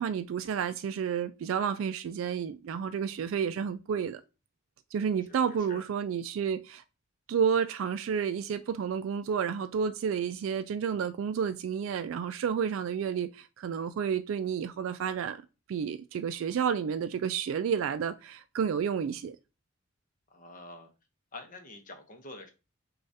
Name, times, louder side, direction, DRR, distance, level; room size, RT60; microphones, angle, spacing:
voice 1, 0.0-4.2 4.9-6.8 7.3-15.4 15.7-19.4, right 7 dB, 75° right, 0.3 m, -30 dB
voice 2, 5.3-5.8 20.3-20.9 21.3-22.5, left 2 dB, 45° left, 0.8 m, -47 dB
6.4 x 2.4 x 2.7 m
head